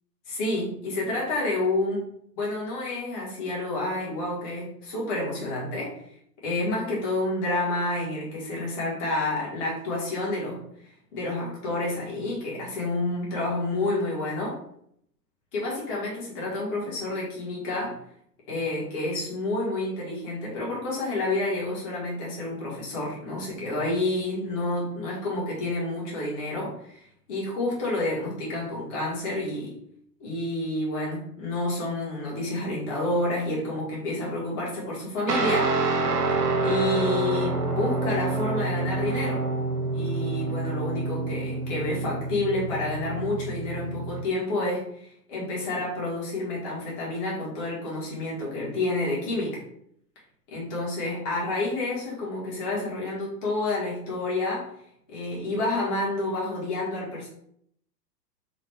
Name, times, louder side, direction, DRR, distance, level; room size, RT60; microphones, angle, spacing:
voice 1, 0.3-2.1 2.4-5.9 6.4-10.6 11.1-14.6 15.5-18.0 18.5-29.7 30.2-35.7 36.3-36.4 36.6-39.4 39.9-49.6 50.5-54.7 55.1-57.3, left 2 dB, 30° left, -5 dB, 1.4 m, -29 dB
Guitar, 35.3-44.2, right 3 dB, 90° right, 0.9 m, -27 dB
3.9 x 2.4 x 3.4 m, 0.69 s
hypercardioid pair, 145°, 48 cm